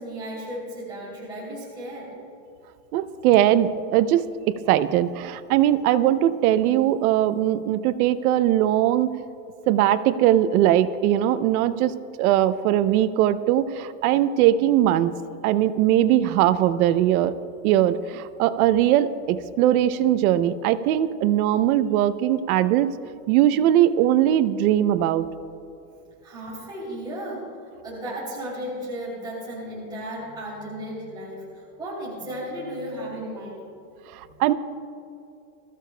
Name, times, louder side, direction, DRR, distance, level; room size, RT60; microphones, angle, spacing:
voice 1, 0.0-2.1 26.2-27.4 27.8-31.4 31.8-33.7, equal, 10° right, -8 dB, 3.0 m, -34 dB
voice 2, 2.9-9.1 9.7-15.1 15.4-17.3 17.6-23.0 23.3-25.3 34.1-34.5, right 12 dB, 75° right, 13 dB, 0.7 m, -20 dB
22.0 x 14.5 x 2.2 m, 2.6 s
supercardioid pair, 165°, 43 cm